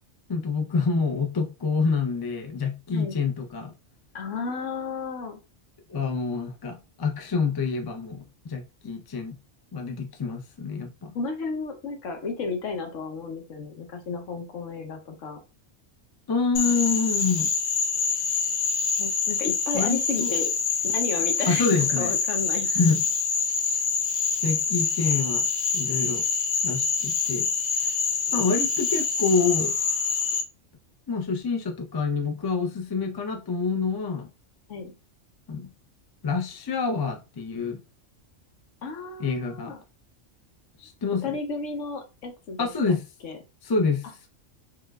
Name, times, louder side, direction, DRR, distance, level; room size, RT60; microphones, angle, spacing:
voice 1, 0.3-3.7 5.9-9.4 9.7-11.1 16.3-17.5 19.7-20.3 21.5-22.1 22.7-23.0 24.4-25.5 25.7-26.2 26.6-27.5 28.3-29.7 31.1-34.3 35.5-35.7 36.2-37.8 39.2-39.7 40.8-41.4 42.6-43.0 43.6-44.3, left 4 dB, 35° left, 0.3 m, -27 dB
voice 2, 4.1-5.4 11.1-15.4 19.0-20.5 20.8-22.7 34.7-34.9 38.8-39.8 41.2-43.0 43.2-43.4, left 4 dB, 80° left, 1.1 m, -33 dB
Frog, 16.5-30.4, left 5 dB, 55° left, 0.7 m, -26 dB
4.8 x 2.4 x 2.2 m
omnidirectional pair, 1.3 m